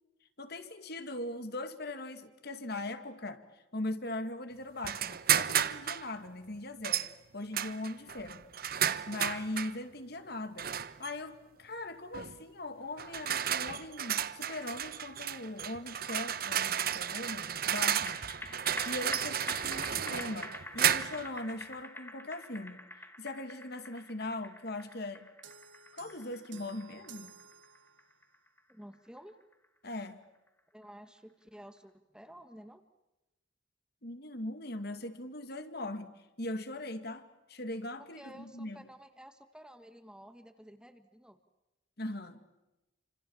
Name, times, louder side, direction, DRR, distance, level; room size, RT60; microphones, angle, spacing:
voice 1, 0.4-8.4 8.7-10.7 11.0-22.8 23.2-25.3 25.9-27.3 29.8-30.2 34.0-38.9 42.0-42.4, left 2 dB, 55° left, 8 dB, 2.4 m, -40 dB
sound 1, 4.8-6.1 6.8-7.1 7.5-9.8 10.6-11.1 12.1-12.4 13.0-21.3, right 9 dB, 50° right, 1.1 m, -32 dB
sound 2, 18.1-30.5 30.8-30.9, left 2 dB, 10° left, 1.7 m, -46 dB
sound 3, 25.4-28.3, right 7 dB, 80° right, 1.7 m, -54 dB
voice 2, 28.7-29.3 30.7-32.8 38.2-41.4, equal, 5° right, 8 dB, 1.7 m, -52 dB
29.5 x 26.5 x 7.3 m, 0.99 s
head